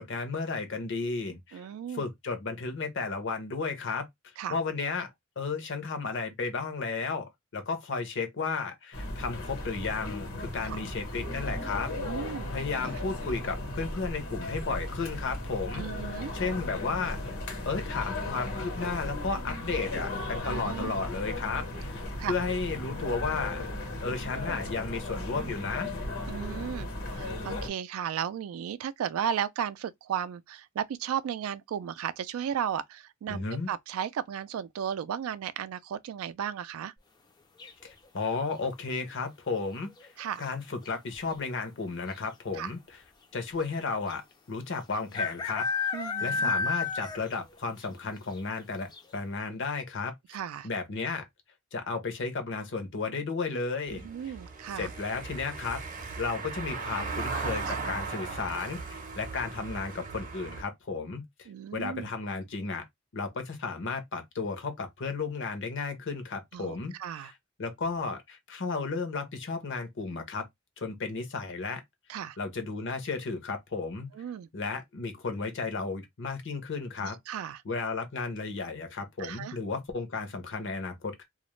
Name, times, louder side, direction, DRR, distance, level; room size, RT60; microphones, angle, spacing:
voice 1, 0.0-1.7 1.9-4.0 4.5-5.1 5.4-11.9 12.5-15.8 16.3-23.6 24.0-25.9 33.3-33.7 37.8-40.1 40.4-42.8 43.3-44.2 44.5-45.6 46.2-48.9 49.1-51.2 51.7-54.1 54.8-55.8 56.2-62.8 63.1-66.9 67.6-70.4 70.8-71.8 72.4-74.1 74.5-77.2 77.6-81.2, left 4 dB, 60° left, 0.7 m, -33 dB
voice 2, 1.5-2.1 4.4-4.5 10.6-10.8 12.0-12.5 12.8-12.9 15.7-16.3 20.5-21.0 22.2-22.3 26.3-36.9 40.2-40.5 42.5-42.7 45.9-46.5 50.3-50.7 53.9-54.9 57.7-57.8 61.5-62.1 66.5-67.3 72.1-72.4 74.1-74.5 77.0-77.6 79.2-79.6, right 9 dB, 80° right, 0.3 m, -35 dB
sound 1, 8.9-27.7, left 1 dB, 80° left, 1.2 m, -36 dB
sound 2, 37.6-38.1 39.9-40.3 40.5-40.6 40.9-41.4 42.2-42.3 42.5-42.6 44.1-44.2 45.1-47.4 47.8-47.9 48.4-48.5 48.9-49.0, left 4 dB, 20° left, 0.4 m, -31 dB
Car passing by / Engine, 53.9-60.6, right 4 dB, 40° right, 0.6 m, -37 dB
2.4 x 2.0 x 3.0 m
head